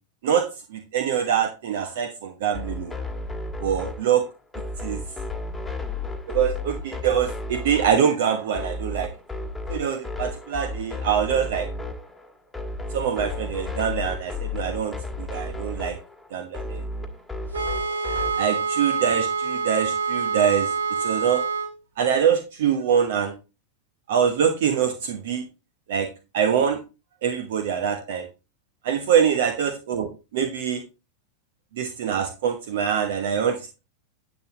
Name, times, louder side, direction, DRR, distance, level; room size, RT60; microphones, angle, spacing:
voice 1, 0.2-2.9 3.6-4.2 4.8-5.0 6.3-9.1 9.7-11.7 12.9-16.0 16.3-16.8 18.4-20.7 21.0-21.4 22.0-23.3 24.1-25.5 25.9-26.1 26.3-26.8 27.2-28.3 28.8-30.8 31.7-33.8, right 8 dB, 55° right, 6 dB, 1.1 m, -24 dB
sound 1, 2.5-18.5, left 2 dB, 5° left, 1.7 m, -33 dB
sound 2, 17.5-21.7, right 5 dB, 75° right, 1.6 m, -26 dB
10.5 x 7.4 x 3.0 m, 0.29 s
figure-of-eight pair, 90°, 0 cm